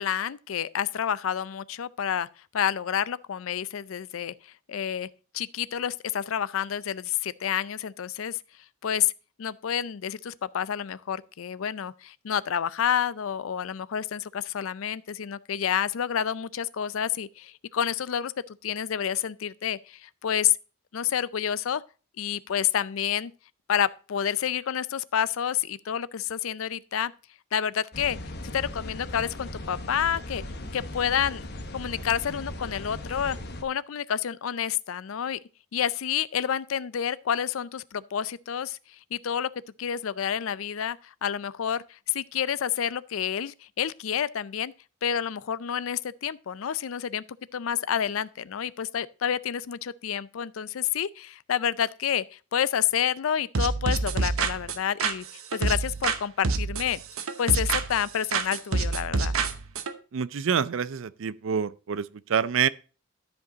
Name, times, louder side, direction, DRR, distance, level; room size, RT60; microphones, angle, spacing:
voice 1, 0.0-2.3 2.5-4.3 4.7-5.1 5.3-8.4 8.8-9.1 9.4-20.6 20.9-21.8 22.2-23.3 23.7-27.1 27.5-28.2 28.5-30.4 30.7-31.5 31.7-33.4 33.6-35.4 35.7-38.8 39.1-39.5 39.8-44.7 45.0-47.2 47.5-55.3 55.5-57.0 57.4-59.3, left 9 dB, 75° left, 0.4 m, -29 dB
sound 1, 27.9-33.6, left 1 dB, 55° left, 1.1 m, -38 dB
sound 2, 53.5-56.2 56.4-58.0 58.3-59.9, right 4 dB, 90° right, 0.9 m, -27 dB
voice 2, 60.1-62.7, right 7 dB, 65° right, 0.5 m, -27 dB
12.5 x 5.3 x 3.9 m
head